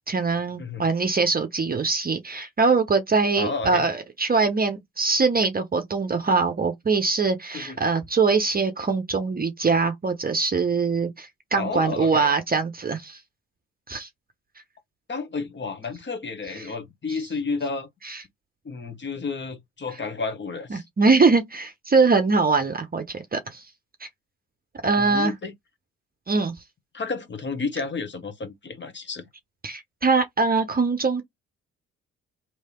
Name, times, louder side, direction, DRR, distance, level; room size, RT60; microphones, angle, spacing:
voice 1, 0.1-13.2 13.9-14.1 17.1-17.2 18.0-18.2 20.7-23.6 24.0-24.1 24.8-25.3 26.3-26.5 29.6-31.2, right 4 dB, 25° right, 0.9 m, -23 dB
voice 2, 3.4-3.8 7.5-7.8 11.6-12.3 15.1-17.9 18.6-20.8 25.0-25.5 26.9-29.3, left 4 dB, 30° left, 1.2 m, -31 dB
3.3 x 3.0 x 4.3 m
figure-of-eight pair, 40°, 38 cm